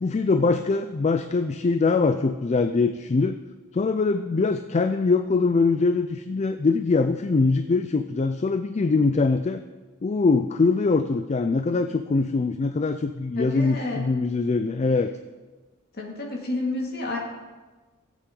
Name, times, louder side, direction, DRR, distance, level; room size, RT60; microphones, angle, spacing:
voice 1, 0.0-3.4 3.7-9.6 10.0-15.1, left 4 dB, 30° left, 9 dB, 0.4 m, -23 dB
voice 2, 13.3-14.0 15.9-17.2, left 2 dB, 50° left, -1 dB, 2.2 m, -30 dB
16.5 x 8.4 x 3.8 m, 1.3 s
head